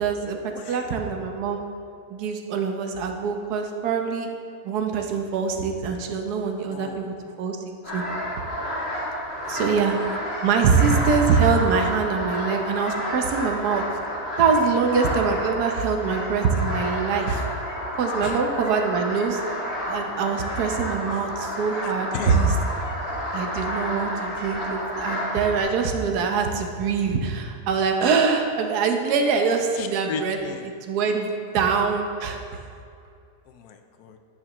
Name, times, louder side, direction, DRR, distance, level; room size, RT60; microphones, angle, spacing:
voice 1, 0.0-0.4 0.7-1.6 2.1-4.3 4.6-7.6 7.9-8.0 9.5-10.0 10.4-13.8 14.4-17.4 18.0-19.4 19.9-22.5 23.3-30.4 30.9-32.4, right 5 dB, 75° right, 3 dB, 1.3 m, -24 dB
voice 2, 6.7-7.1 9.5-9.6 9.9-10.2 18.2-18.4 21.1-21.3 21.8-22.5 23.3-23.5 29.7-30.7 31.2-31.6 33.5-34.2, left 6 dB, 75° left, 6 dB, 1.1 m, -36 dB
sound 1, 7.8-25.6, equal, 40° left, 2.8 m, -30 dB
10.0 x 9.0 x 3.0 m, 2.4 s
omnidirectional pair, 1.7 m